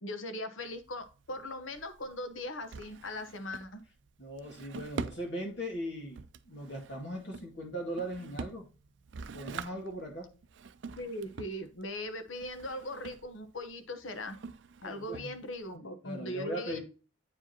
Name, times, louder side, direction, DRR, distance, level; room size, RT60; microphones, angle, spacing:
voice 1, 0.0-3.8 11.0-14.4 14.8-16.8, left 1 dB, 85° left, 8 dB, 1.0 m, -39 dB
Drawer open or close, 0.6-15.8, right 5 dB, 65° right, 0.4 m, -46 dB
voice 2, 4.2-8.7 9.3-10.3 14.8-15.4 16.0-16.8, equal, 65° left, 0 dB, 2.2 m, -39 dB
8.6 x 4.9 x 2.8 m, 0.35 s
head